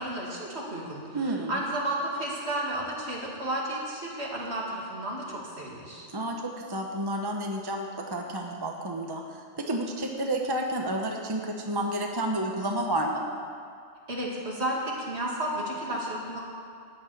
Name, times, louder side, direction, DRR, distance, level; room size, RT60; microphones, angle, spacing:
voice 1, 0.0-6.1 14.1-16.4, right 1 dB, 60° right, -4 dB, 2.8 m, -32 dB
voice 2, 1.1-1.6 6.1-9.2 9.6-13.2, right 1 dB, 20° right, 1 dB, 0.9 m, -30 dB
13.5 x 6.7 x 9.5 m, 2.3 s
omnidirectional pair, 1.2 m